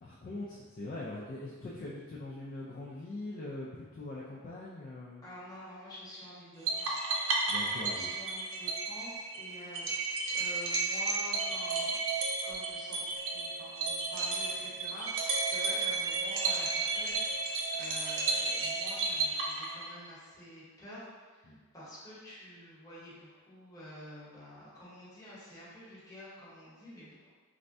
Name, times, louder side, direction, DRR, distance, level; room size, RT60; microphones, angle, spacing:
voice 1, 0.0-5.2 7.5-8.1 21.5-21.6, left 2 dB, 40° left, -6 dB, 0.3 m, -42 dB
voice 2, 5.2-7.0 7.8-11.9 12.4-27.3, equal, 15° left, -10 dB, 0.9 m, -49 dB
sound 1, 6.7-20.1, right 3 dB, 65° right, 0.4 m, -33 dB
3.3 x 2.1 x 2.6 m, 1.4 s
head